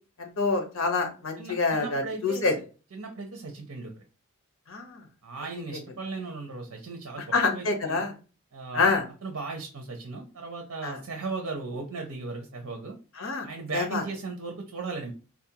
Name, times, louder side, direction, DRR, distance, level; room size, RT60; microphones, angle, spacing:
voice 1, 0.2-2.5 4.7-5.0 7.3-8.1 8.7-9.0 10.8-11.0 13.2-13.5 13.7-14.0, left 3 dB, 70° left, 4 dB, 1.0 m, -26 dB
voice 2, 1.4-2.5 2.9-3.9 5.2-8.0 8.5-8.9 9.2-12.9 13.4-15.1, right 3 dB, 75° right, 2 dB, 0.7 m, -37 dB
4.0 x 2.4 x 2.8 m, 0.34 s
head